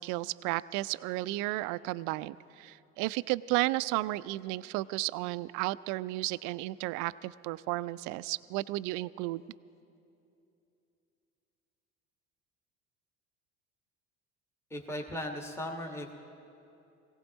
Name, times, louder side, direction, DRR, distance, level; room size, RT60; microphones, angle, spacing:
voice 1, 0.0-9.4, right 19 dB, 60° right, 18 dB, 0.4 m, -33 dB
voice 2, 14.7-16.1, left 1 dB, 5° left, 1 dB, 1.4 m, -37 dB
18.5 x 17.0 x 4.0 m, 2.7 s
hypercardioid pair, 70°, 35 cm